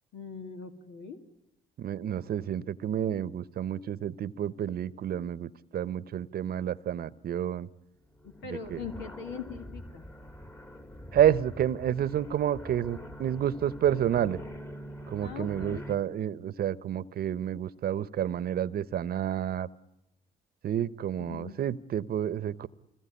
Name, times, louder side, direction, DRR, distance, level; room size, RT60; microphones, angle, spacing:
voice 1, 0.1-1.2 8.2-10.0 15.2-15.8 21.3-21.5, left 6 dB, 80° left, 5 dB, 2.4 m, -41 dB
voice 2, 1.8-7.7 8.5-8.8 11.1-14.4 15.1-19.7 20.6-22.7, right 10 dB, 60° right, 20 dB, 0.9 m, -29 dB
sound 1, 8.2-16.0, equal, 15° left, 1.8 m, -44 dB
26.0 x 20.5 x 9.9 m, 0.94 s
supercardioid pair, 60°, 18 cm